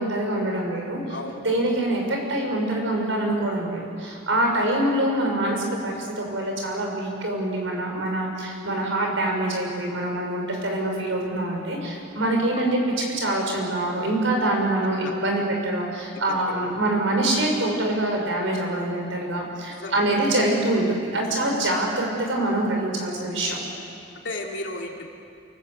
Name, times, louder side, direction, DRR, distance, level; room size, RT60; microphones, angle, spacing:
voice 1, 0.0-1.0 1.4-12.8 13.2-23.6, right 1 dB, 70° right, 0 dB, 6.2 m, -25 dB
voice 2, 1.1-1.4 4.6-4.8 12.5-12.8 15.0-15.2 16.3-16.8 19.8-20.1 24.2-25.1, left 2 dB, 60° left, 0 dB, 3.2 m, -35 dB
29.0 x 19.5 x 8.4 m, 2.4 s
head